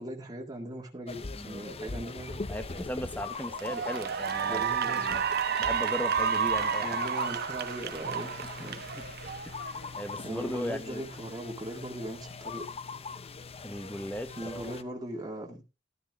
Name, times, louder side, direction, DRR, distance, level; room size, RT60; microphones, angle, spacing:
voice 1, 0.0-2.4 4.5-5.2 6.8-8.3 8.6-8.8 10.2-12.7 14.4-15.6, right 1 dB, 20° right, 1.9 m, -39 dB
sound 1, 1.1-14.8, left 4 dB, 30° left, 0.6 m, -41 dB
voice 2, 2.5-5.3 5.6-6.9 8.9-9.0 9.5-9.6 9.9-11.1 13.6-14.7, left 1 dB, 10° left, 1.0 m, -37 dB
Cheering / Applause, 2.8-3.0 3.5-10.0, right 7 dB, 50° right, 1.0 m, -31 dB
13.0 x 12.5 x 2.5 m
head